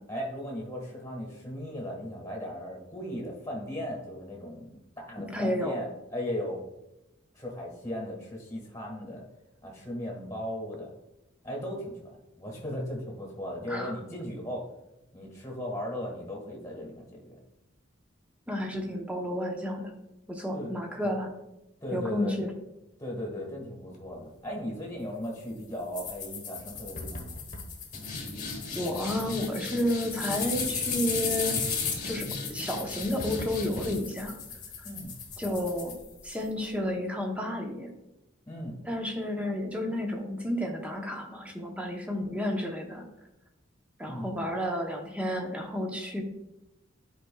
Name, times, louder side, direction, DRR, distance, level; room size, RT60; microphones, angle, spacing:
voice 1, 0.1-6.6 7.3-9.2 9.6-10.9 11.4-14.7 15.1-17.4 20.5-20.7 21.0-21.2 21.8-22.4 23.0-27.4 34.8-35.1 38.5-38.8 44.0-44.4, equal, 15° left, -3 dB, 1.6 m, -37 dB
voice 2, 5.2-5.8 13.7-14.0 18.5-19.9 20.3-21.3 21.9-22.5 28.7-31.6 32.0-34.4 35.4-35.9 36.2-37.9 38.8-43.1 44.0-46.2, left 1 dB, 5° right, 2 dB, 0.7 m, -31 dB
sound 1, 25.9-36.5, left 5 dB, 40° left, 1.1 m, -35 dB
10.5 x 4.6 x 2.3 m, 0.92 s
head